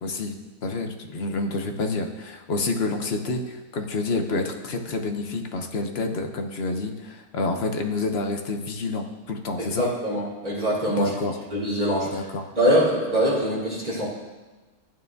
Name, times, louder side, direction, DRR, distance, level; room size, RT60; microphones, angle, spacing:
voice 1, 0.0-9.9 11.0-11.4 12.1-12.4, left 3 dB, 50° left, 5 dB, 0.9 m, -28 dB
voice 2, 9.6-11.1 11.5-12.2 12.6-14.1, equal, 30° right, -8 dB, 3.8 m, -23 dB
14.0 x 8.9 x 2.7 m, 1.2 s
omnidirectional pair, 1.6 m